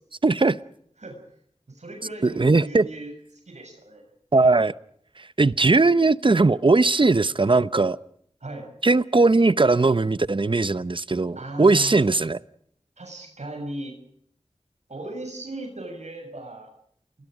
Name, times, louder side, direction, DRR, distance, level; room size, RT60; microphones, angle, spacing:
voice 1, 0.2-0.6 2.2-2.9 4.3-4.7 5.4-8.0 8.8-12.4, right 3 dB, 45° right, 17 dB, 0.8 m, -19 dB
voice 2, 1.7-4.0 8.4-8.7 11.3-11.9 13.0-13.9 14.9-16.7, right 2 dB, 75° right, 3 dB, 6.7 m, -37 dB
29.5 x 22.5 x 5.0 m, 0.67 s
wide cardioid pair, 50°, 12 cm